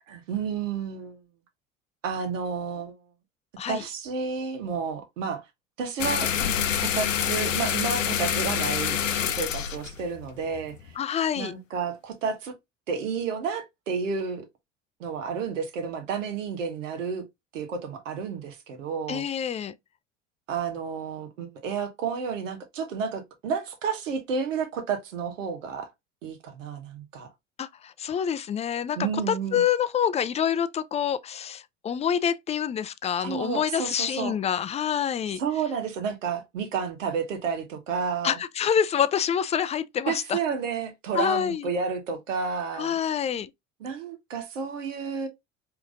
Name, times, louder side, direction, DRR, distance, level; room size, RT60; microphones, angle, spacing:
voice 1, 0.1-1.2 2.0-3.0 3.7-5.4 5.8-6.3 6.8-9.0 9.3-10.8 11.3-12.5 12.9-14.4 15.0-17.3 17.5-19.2 20.5-25.9 26.2-27.3 29.0-29.6 33.2-34.3 35.4-38.4 40.1-43.0 43.8-45.3, right 6 dB, 80° right, 1.2 m, -31 dB
sound 1, 6.0-10.9, left 8 dB, 85° left, 0.6 m, -27 dB
voice 2, 11.0-11.5 19.1-19.7 27.6-29.0 29.3-35.4 38.2-40.4 41.1-41.7 42.8-43.5, left 8 dB, 20° left, 0.3 m, -27 dB
4.7 x 3.0 x 2.5 m
hypercardioid pair, 70°, 38 cm